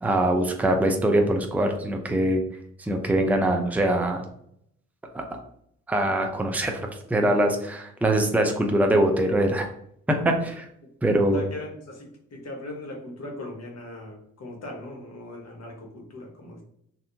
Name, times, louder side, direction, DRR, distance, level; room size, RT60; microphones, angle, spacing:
voice 1, 0.0-2.4 2.8-4.2 5.1-5.2 5.9-9.7 10.2-10.7 11.0-11.4, right 1 dB, 5° right, 3 dB, 0.6 m, -23 dB
voice 2, 11.3-16.6, left 1 dB, 50° left, 1 dB, 1.4 m, -39 dB
3.3 x 2.7 x 2.6 m, 0.69 s
hypercardioid pair, 50°, 33 cm